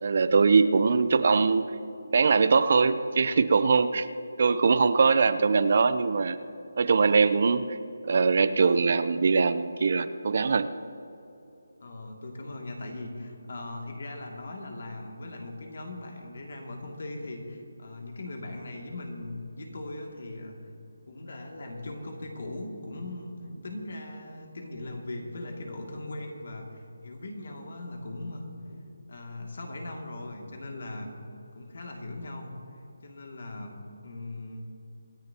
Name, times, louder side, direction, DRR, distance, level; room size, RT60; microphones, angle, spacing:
voice 1, 0.0-1.7 2.1-4.1 4.4-6.4 6.8-7.8 8.0-10.7, right 4 dB, 50° right, 12 dB, 0.6 m, -22 dB
voice 2, 11.8-20.6 21.1-31.1 31.5-32.5 33.0-33.7 34.0-34.6, left 2 dB, 60° left, 1 dB, 2.5 m, -39 dB
26.0 x 10.5 x 2.9 m, 2.8 s
figure-of-eight pair, 165°, 0 cm